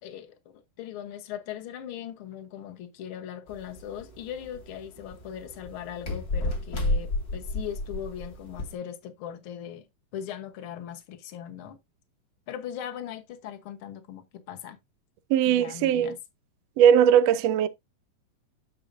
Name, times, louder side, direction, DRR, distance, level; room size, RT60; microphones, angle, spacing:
voice 1, 0.0-9.8 10.1-11.8 12.5-14.8 15.4-16.2, left 9 dB, 60° left, 1.4 m, -39 dB
sound 1, 3.5-8.7, left 2 dB, 45° left, 1.3 m, -32 dB
voice 2, 15.3-16.2 16.8-17.7, right 9 dB, 90° right, 1.4 m, -19 dB
10.0 x 6.6 x 2.6 m
omnidirectional pair, 3.9 m